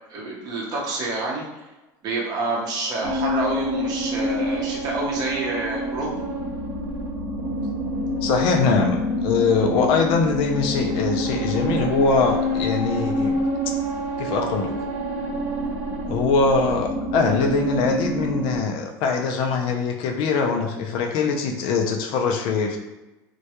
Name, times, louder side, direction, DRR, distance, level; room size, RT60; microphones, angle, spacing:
voice 1, 0.1-1.6 2.0-6.1, right 2 dB, 40° right, -3 dB, 0.7 m, -28 dB
sound 1, 3.0-18.6, equal, 85° right, 0.8 m, -27 dB
voice 2, 8.2-13.4 13.7-13.8 14.2-14.7 16.1-22.8, left 4 dB, 60° left, 3 dB, 0.4 m, -22 dB
2.2 x 2.1 x 2.8 m, 1.1 s
supercardioid pair, 125°, 10 cm